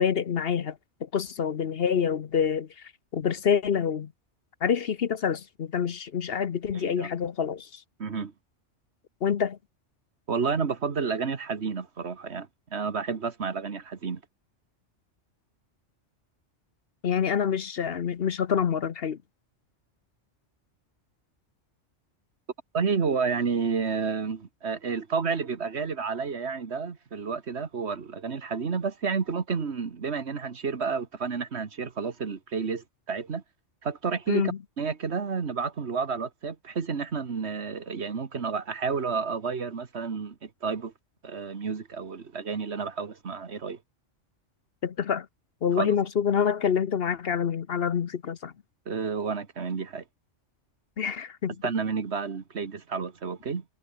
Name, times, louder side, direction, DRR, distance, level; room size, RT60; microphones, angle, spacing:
voice 1, 0.0-4.1 4.6-7.8 9.2-9.6 17.0-19.2 34.3-34.6 44.8-45.3 45.6-48.5 51.0-51.5, left 7 dB, 55° left, 1.0 m, -27 dB
voice 2, 6.7-7.1 8.0-8.3 10.3-14.2 22.7-33.4 33.8-40.9 41.2-43.8 45.8-45.9 48.9-50.0 51.6-53.6, right 5 dB, 65° right, 1.8 m, -30 dB
omnidirectional pair, 1.2 m